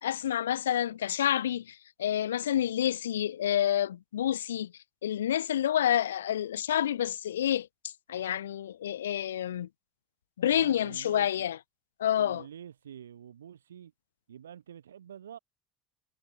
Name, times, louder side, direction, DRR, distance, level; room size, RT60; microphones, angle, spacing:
voice 1, 0.0-4.7 5.0-9.7 10.4-11.6 12.0-12.4, left 10 dB, 85° left, 0.4 m, -29 dB
voice 2, 10.5-11.5 12.1-13.9 14.3-15.4, right 9 dB, 90° right, 2.1 m, -47 dB
hypercardioid pair, 65°, 0 cm